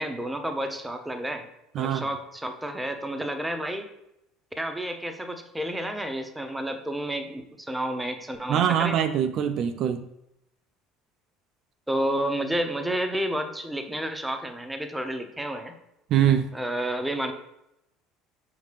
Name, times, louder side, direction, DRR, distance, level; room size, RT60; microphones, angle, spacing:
voice 1, 0.0-1.4 1.8-3.9 4.6-9.0 11.9-15.7 16.5-17.3, right 1 dB, 10° right, 6 dB, 0.6 m, -30 dB
voice 2, 8.5-10.1 16.1-16.5, right 9 dB, 55° right, 8 dB, 0.3 m, -23 dB
5.2 x 2.8 x 3.3 m, 0.84 s
hypercardioid pair, 80°, 0 cm